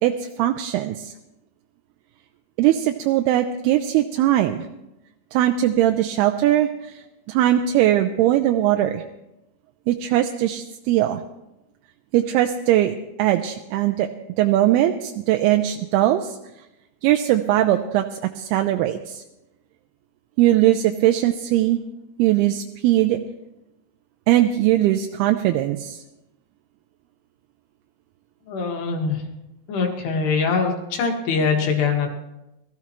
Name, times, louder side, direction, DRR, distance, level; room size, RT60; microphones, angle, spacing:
voice 1, 0.0-1.1 2.6-4.6 5.3-6.9 7.3-9.0 9.9-11.2 12.1-14.1 14.4-16.3 17.0-19.2 20.4-21.8 22.2-23.2 24.3-26.0, right 13 dB, 80° right, 5 dB, 2.5 m, -20 dB
voice 2, 28.5-29.2 29.7-32.2, left 5 dB, 75° left, 2 dB, 3.8 m, -23 dB
21.5 x 14.5 x 3.1 m, 0.93 s
omnidirectional pair, 4.7 m